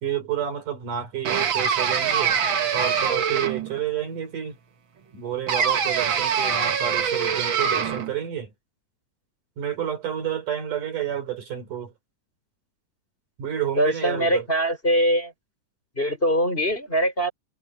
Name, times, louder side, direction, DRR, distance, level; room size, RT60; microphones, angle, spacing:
voice 1, 0.0-2.4 2.7-4.6 5.1-8.5 9.6-11.9 13.4-14.5, right 9 dB, 75° right, 5.1 m, -30 dB
sound 1, 1.2-3.8 5.5-8.1, right 7 dB, 50° right, 1.7 m, -24 dB
voice 2, 13.8-15.3 16.0-17.3, equal, 15° left, 6.3 m, -22 dB
omnidirectional pair, 3.7 m